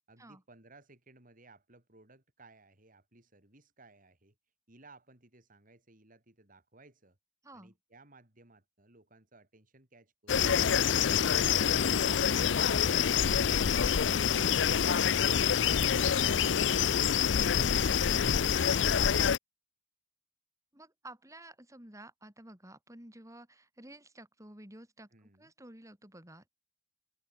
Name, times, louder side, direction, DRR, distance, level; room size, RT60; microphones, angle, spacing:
voice 1, 0.1-4.4 4.7-7.2 7.5-12.4 25.1-25.5, right 2 dB, 50° right, 5.5 m, -60 dB
voice 2, 7.4-7.7 16.1-16.5 20.7-26.5, right 1 dB, 20° right, 7.9 m, -52 dB
sound 1, 10.3-19.4, left 8 dB, 85° left, 0.6 m, -26 dB
open air
head